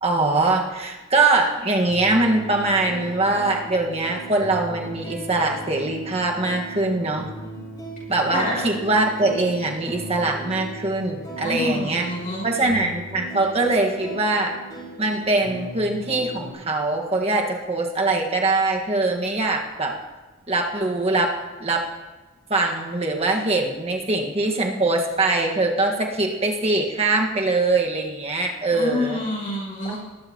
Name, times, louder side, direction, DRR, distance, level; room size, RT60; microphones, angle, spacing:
voice 1, 0.0-7.3 8.1-12.1 12.4-14.5 15.0-19.9 20.5-21.3 21.6-21.9 22.5-29.2 29.8-30.0, right 2 dB, 30° right, 1 dB, 1.4 m, -22 dB
sound 1, 1.8-16.5, right 2 dB, 20° left, 4.7 m, -38 dB
voice 2, 11.4-12.5 28.7-30.0, left 2 dB, 40° left, -6 dB, 4.9 m, -27 dB
20.0 x 12.0 x 2.9 m, 1.2 s
head